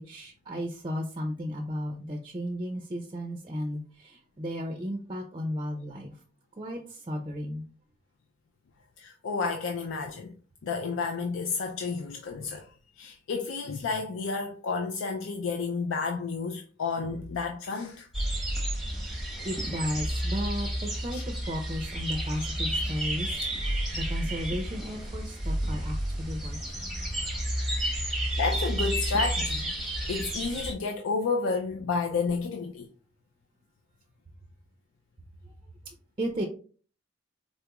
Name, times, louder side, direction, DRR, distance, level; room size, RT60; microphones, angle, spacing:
voice 1, 0.0-6.1 6.5-7.6 19.4-23.3 23.7-26.9 35.4-35.5 36.2-36.4, equal, 25° right, 0.4 m, -34 dB
voice 2, 9.0-10.3 10.6-12.7 13.0-18.1 21.1-21.2 28.4-32.9, left 4 dB, 85° left, 0.4 m, -31 dB
sound 1, 18.1-30.7, right 1 dB, ahead, 0.7 m, -31 dB
4.1 x 2.3 x 2.9 m
head